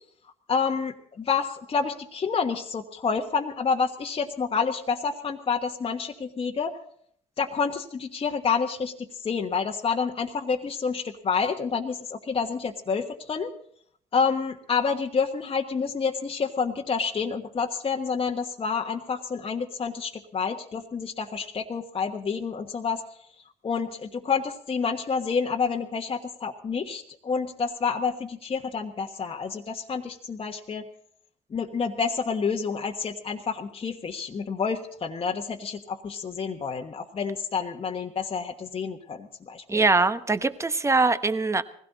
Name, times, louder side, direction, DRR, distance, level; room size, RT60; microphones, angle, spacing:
voice 1, 0.5-6.8 7.4-13.5 14.1-23.0 23.6-30.8 31.5-39.8, left 5 dB, 30° left, 2 dB, 1.3 m, -28 dB
voice 2, 39.7-41.6, right 3 dB, 15° right, 11 dB, 1.1 m, -22 dB
20.0 x 16.5 x 4.1 m, 0.63 s
supercardioid pair, 70°, 17 cm